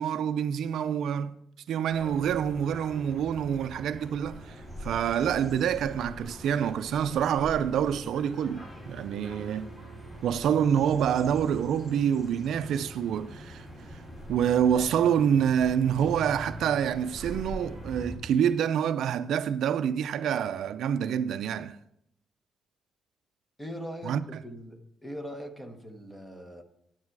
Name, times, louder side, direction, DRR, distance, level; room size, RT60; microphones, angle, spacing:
voice 1, 0.0-1.3 1.7-9.7 10.2-13.7 13.9-14.0 14.3-21.8 24.0-24.2, right 8 dB, 70° right, 0.4 m, -27 dB
sound 1, 1.9-18.2, equal, 25° left, 3.8 m, -43 dB
voice 2, 23.6-26.6, equal, 10° left, 1.0 m, -41 dB
9.6 x 8.8 x 4.7 m
cardioid pair, 175°, 0 cm